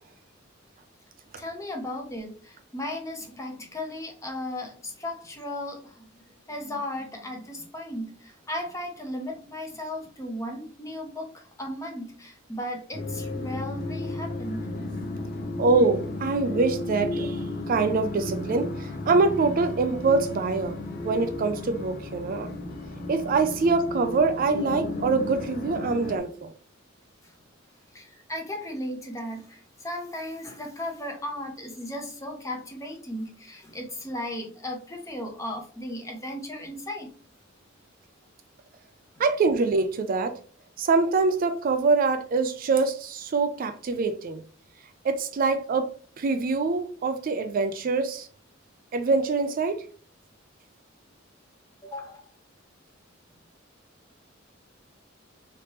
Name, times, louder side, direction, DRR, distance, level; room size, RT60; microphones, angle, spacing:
voice 1, 1.4-6.2 6.5-14.7 27.2-27.3 27.9-37.1 51.8-52.2, left 1 dB, 15° left, 0.8 m, -36 dB
sound 1, 12.9-26.2, left 2 dB, 55° left, 0.7 m, -33 dB
voice 2, 15.6-20.8 21.0-22.5 23.1-26.5 39.2-40.4 40.8-44.4 45.0-48.3 48.9-49.9, right 4 dB, 45° right, 0.4 m, -24 dB
3.3 x 2.9 x 2.9 m
head